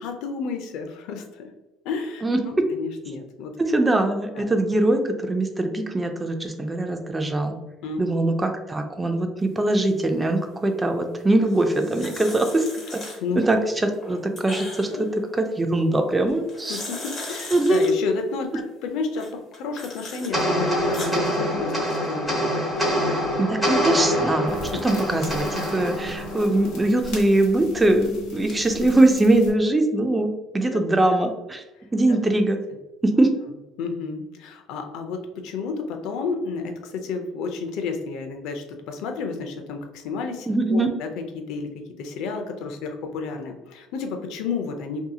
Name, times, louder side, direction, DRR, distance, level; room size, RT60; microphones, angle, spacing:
voice 1, 0.0-1.5 1.8-3.6 4.3-4.5 7.8-8.0 13.2-13.4 14.9-15.0 16.7-23.1 30.7-30.8 33.8-45.0, left 4 dB, 75° left, 5 dB, 0.5 m, -31 dB
voice 2, 3.6-7.5 8.0-12.6 12.9-13.0 13.4-16.8 17.5-17.9 23.4-30.3 30.5-31.6 31.9-32.6 33.0-33.3 40.5-40.9, right 2 dB, 15° right, 5 dB, 0.3 m, -22 dB
sound 1, 11.4-13.5 13.9-15.1 16.3-17.9 19.1-20.3 20.7-21.2, left 2 dB, 35° left, 1.0 m, -37 dB
sound 2, 20.3-27.0, equal, 5° left, 1.0 m, -25 dB
sound 3, 24.5-29.5, left 2 dB, 90° left, 0.8 m, -37 dB
2.7 x 2.7 x 2.3 m, 1.1 s
cardioid pair, 135°, 0 cm